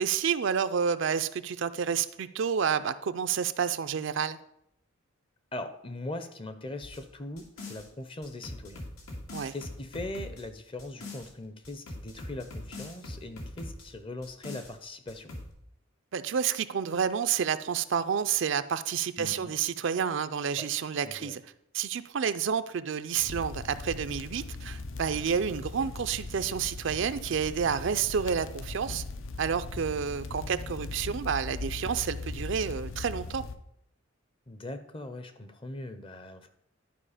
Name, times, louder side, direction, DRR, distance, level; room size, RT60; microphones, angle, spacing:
voice 1, 0.0-4.4 9.3-9.5 16.1-21.4 21.7-29.0 29.4-33.4, right 7 dB, 60° right, 12 dB, 0.4 m, -29 dB
voice 2, 5.5-8.8 9.5-15.3 19.2-19.5 20.6-20.7 21.0-21.4 25.8-25.9 30.3-31.3 34.5-36.5, left 2 dB, 25° left, 9 dB, 0.6 m, -41 dB
sound 1, 6.8-7.9 8.2-11.3 11.6-13.9 14.2-14.7 15.1-15.5, left 2 dB, 85° left, 2.2 m, -42 dB
sound 2, 23.2-33.6, left 3 dB, 70° left, 0.6 m, -39 dB
11.5 x 4.6 x 5.0 m, 0.76 s
head